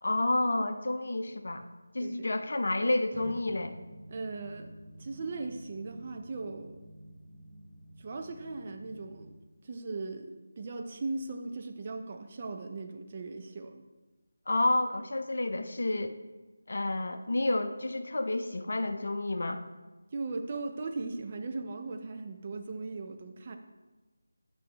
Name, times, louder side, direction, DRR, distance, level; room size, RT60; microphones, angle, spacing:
voice 1, 0.0-1.7 1.9-3.7 14.5-16.2 16.7-19.6, left 2 dB, 60° left, 8 dB, 0.6 m, -30 dB
voice 2, 2.0-2.3 4.1-4.7 5.0-6.8 8.0-9.3 9.6-13.8 20.1-23.6, right 3 dB, 35° right, 5 dB, 0.5 m, -38 dB
sound 1, 3.1-9.4, right 1 dB, 10° right, 1.1 m, -50 dB
8.4 x 5.3 x 3.2 m, 1.2 s
figure-of-eight pair, 160°, 0 cm